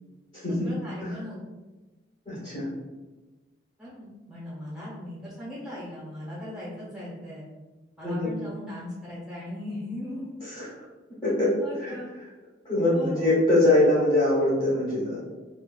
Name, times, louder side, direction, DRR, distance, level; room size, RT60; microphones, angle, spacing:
voice 1, 0.5-1.4 3.8-7.5 8.0-10.4 11.6-12.1 12.9-13.4, left 1 dB, 5° right, -9 dB, 1.0 m, -38 dB
voice 2, 2.3-2.7 8.0-8.3 10.4-10.7 11.2-11.5 11.8-12.0 12.6-15.2, left 1 dB, 30° left, -11 dB, 0.9 m, -23 dB
2.6 x 2.4 x 2.3 m, 1.2 s
head